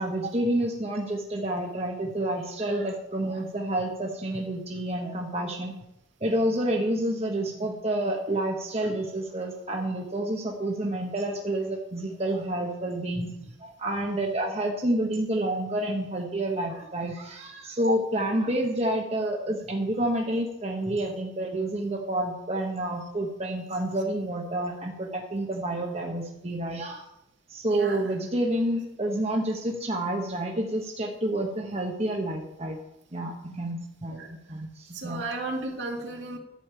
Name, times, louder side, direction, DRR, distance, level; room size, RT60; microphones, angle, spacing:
voice 1, 0.0-5.8 6.2-27.0 27.5-32.8 33.1-35.2, right 1 dB, 35° right, 1 dB, 1.1 m, -29 dB
voice 2, 27.7-28.0 34.1-34.3 34.9-36.4, right 3 dB, 70° right, 1 dB, 2.5 m, -33 dB
11.5 x 5.4 x 8.8 m, 0.86 s
head